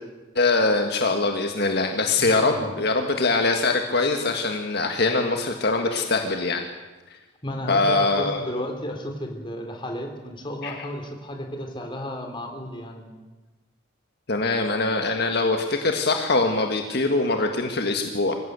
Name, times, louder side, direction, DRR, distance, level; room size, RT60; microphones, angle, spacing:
voice 1, 0.3-6.6 7.7-8.6 10.6-10.7 14.3-18.3, left 3 dB, 60° left, 4 dB, 1.7 m, -23 dB
voice 2, 2.1-2.7 7.4-13.1, equal, 25° left, 3 dB, 3.4 m, -33 dB
25.5 x 15.5 x 8.2 m, 1.2 s
head